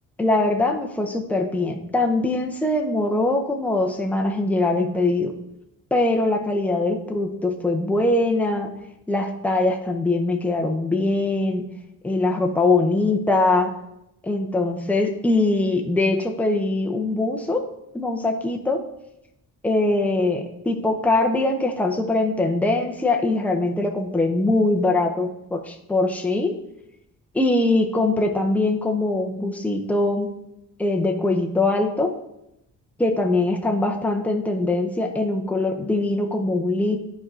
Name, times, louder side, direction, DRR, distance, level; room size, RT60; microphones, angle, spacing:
voice 1, 0.2-5.3 5.9-8.7 9.1-11.7 12.0-13.7 14.2-17.6 17.9-18.8 19.6-26.5 27.3-30.3 30.8-32.1 33.0-37.0, left 2 dB, 5° left, 2 dB, 0.8 m, -22 dB
11.5 x 4.7 x 3.8 m, 0.84 s
cardioid pair, 130°, 32 cm